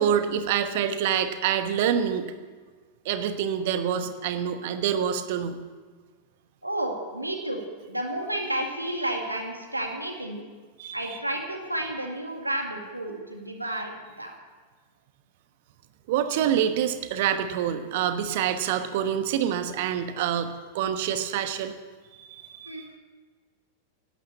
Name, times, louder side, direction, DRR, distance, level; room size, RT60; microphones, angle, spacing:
voice 1, 0.0-2.3 3.0-5.6 10.8-11.0 16.1-21.7 22.2-22.9, right 9 dB, 50° right, 9 dB, 1.1 m, -26 dB
voice 2, 6.6-7.6 7.9-10.4 10.9-14.3 22.6-23.0, right 1 dB, 85° right, 2 dB, 2.0 m, -31 dB
12.0 x 9.6 x 8.2 m, 1.4 s
figure-of-eight pair, 90°, 0 cm